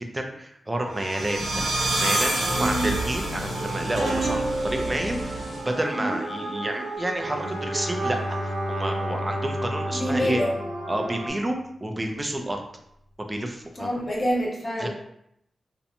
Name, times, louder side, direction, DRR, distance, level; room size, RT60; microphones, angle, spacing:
voice 1, 0.0-10.4 10.9-12.6 13.2-13.9 14.8-14.9, right 1 dB, 20° right, 3 dB, 0.4 m, -30 dB
sound 1, 0.7-11.3, right 2 dB, 75° right, 0.5 m, -30 dB
sound 2, 1.3-6.2, right 1 dB, 75° left, 0.9 m, -33 dB
voice 2, 2.5-2.9 5.9-6.2 9.9-10.6 13.8-14.9, equal, 30° left, -4 dB, 0.6 m, -26 dB
Bowed string instrument, 7.2-11.5, equal, 40° right, 0.7 m, -33 dB
2.5 x 2.1 x 2.8 m, 0.75 s
wide cardioid pair, 115°, 0 cm